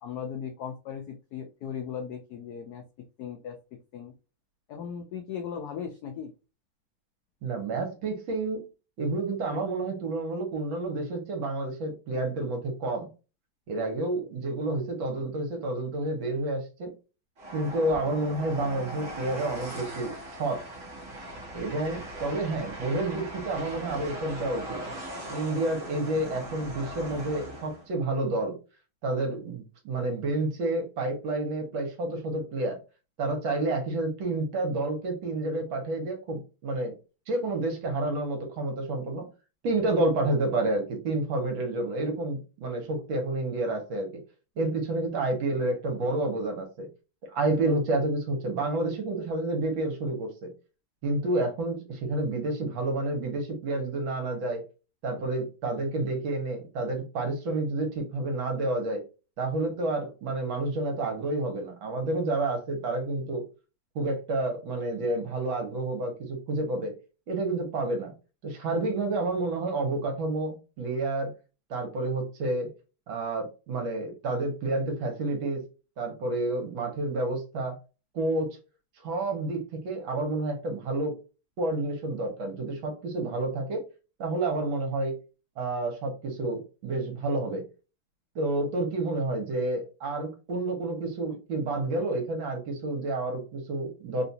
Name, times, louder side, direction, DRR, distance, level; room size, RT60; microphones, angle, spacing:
voice 1, 0.0-2.8 3.2-4.1 4.7-6.3, left 7 dB, 80° left, 4 dB, 0.8 m, -37 dB
voice 2, 7.4-8.7 9.0-13.1 13.7-16.9 17.5-20.6 21.5-24.8 25.3-28.6 29.0-32.8 33.2-36.9 37.3-39.3 39.6-44.1 44.6-46.9 47.3-50.5 51.0-54.6 55.0-59.0 59.4-63.5 64.0-66.9 67.3-68.1 68.4-71.3 71.7-72.7 73.1-75.6 76.0-77.8 78.1-78.6 79.0-81.2 81.6-83.8 84.2-85.1 85.6-87.7 88.4-94.2, right 2 dB, 70° right, 3 dB, 1.8 m, -29 dB
Train, 17.4-27.9, right 1 dB, 50° right, 1.1 m, -40 dB
3.8 x 2.4 x 2.7 m, 0.31 s
omnidirectional pair, 2.3 m